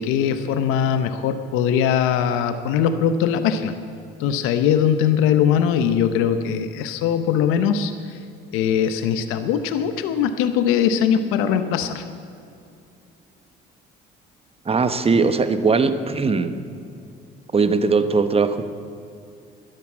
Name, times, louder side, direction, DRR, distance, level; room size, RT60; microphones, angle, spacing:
voice 1, 0.0-3.7 4.2-7.9 8.5-12.0, left 8 dB, 85° left, 10 dB, 0.8 m, -21 dB
voice 2, 14.6-16.6 17.5-18.7, right 4 dB, 30° right, 10 dB, 1.2 m, -19 dB
13.0 x 10.5 x 8.4 m, 2.6 s
supercardioid pair, 75°, 21 cm